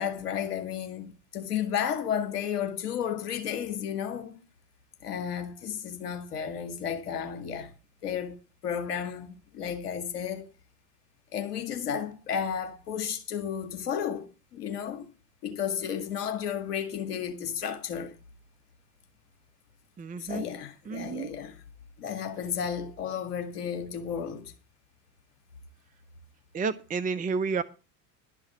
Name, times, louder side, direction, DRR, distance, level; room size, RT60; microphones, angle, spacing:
voice 1, 0.0-4.4 5.0-7.7 8.0-10.5 11.3-15.1 15.4-18.1 20.2-21.6 22.0-24.5, left 8 dB, 70° left, 2.0 m, -33 dB
voice 2, 20.0-20.5 20.9-21.3 26.5-27.6, right 5 dB, 15° right, 0.7 m, -30 dB
12.0 x 6.1 x 8.2 m
figure-of-eight pair, 65°, 48 cm